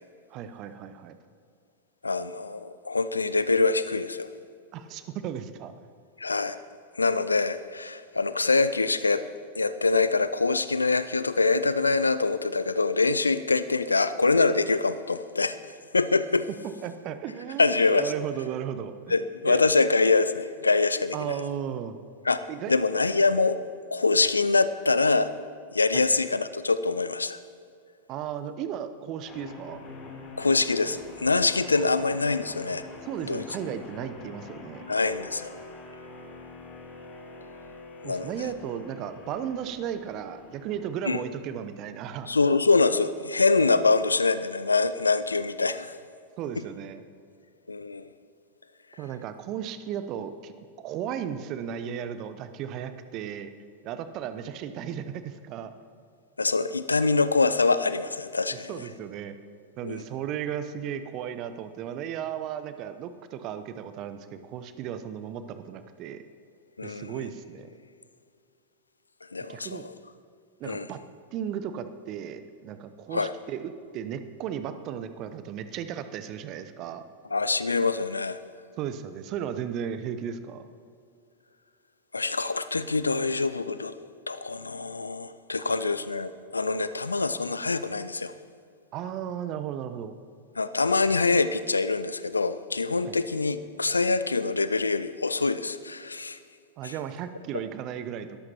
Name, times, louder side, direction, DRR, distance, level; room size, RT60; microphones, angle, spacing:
voice 1, 0.3-1.2 4.7-5.7 16.8-19.6 21.1-22.0 22.5-22.7 25.9-26.1 28.1-29.8 33.0-34.8 38.0-42.3 46.4-47.0 49.0-50.5 50.8-53.5 53.8-55.7 58.5-59.3 59.8-66.2 66.8-67.7 69.5-69.8 70.6-71.0 71.3-77.0 78.8-80.6 85.6-85.8 88.9-90.1 93.1-93.2 96.8-98.4, right 9 dB, 40° right, 11 dB, 0.8 m, -35 dB
voice 2, 2.0-4.3 6.2-6.6 7.0-9.2 9.6-15.5 15.9-16.5 17.6-18.1 19.1-21.3 22.2-22.4 22.7-23.6 23.9-25.3 25.7-27.4 30.4-32.8 33.3-33.4 34.9-35.5 38.0-38.5 41.0-41.2 42.3-45.9 47.7-48.1 56.4-58.7 59.8-60.0 66.8-67.3 69.3-69.9 70.6-70.9 73.1-73.3 77.3-78.4 82.1-83.9 84.3-88.3 90.6-96.4 96.8-96.9, left 3 dB, 80° left, 13 dB, 0.5 m, -24 dB
sound 1, 29.3-42.3, left 3 dB, 35° left, 3.3 m, -45 dB
21.5 x 14.0 x 3.0 m, 2.3 s
figure-of-eight pair, 90°, 0 cm